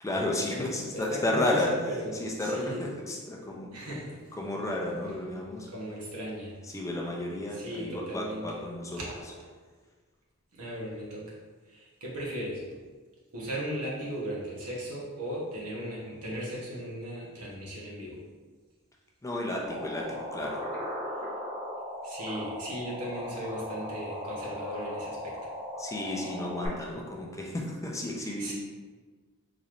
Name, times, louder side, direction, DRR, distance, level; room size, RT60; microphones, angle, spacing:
voice 1, 0.0-1.8 2.2-3.7 4.4-5.7 6.7-9.0 19.2-20.7 25.8-28.5, left 1 dB, 15° left, -1 dB, 0.4 m, -32 dB
voice 2, 0.9-2.8 3.7-4.3 5.7-6.6 7.5-8.6 8.9-9.1 10.5-11.4 11.7-12.6 13.3-18.2 22.0-25.4 28.4-28.5, equal, 85° right, -4 dB, 1.0 m, -37 dB
sound 1, 19.7-26.7, equal, 30° right, 1.0 m, -38 dB
3.9 x 3.1 x 2.5 m, 1.4 s
head